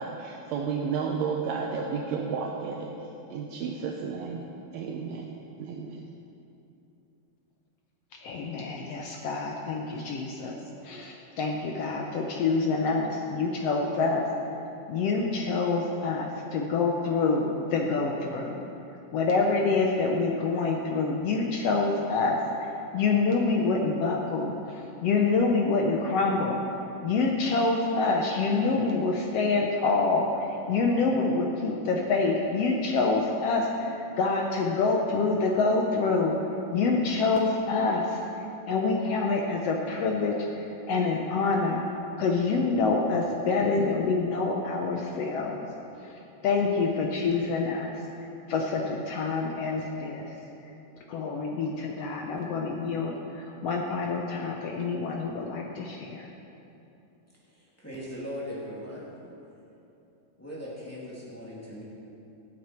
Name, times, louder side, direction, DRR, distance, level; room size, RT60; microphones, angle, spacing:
voice 1, 0.0-2.9 3.3-4.5 4.7-6.1, right 5 dB, 75° right, 1 dB, 1.6 m, -32 dB
voice 2, 8.2-10.6 10.8-18.6 19.1-41.8 42.2-45.6 46.0-50.3 50.6-50.7 51.1-56.3, left 3 dB, 80° left, 1 dB, 1.4 m, -27 dB
voice 3, 57.5-59.1 60.4-61.8, equal, 5° left, -8 dB, 2.0 m, -39 dB
15.5 x 8.6 x 4.4 m, 2.8 s
omnidirectional pair, 3.8 m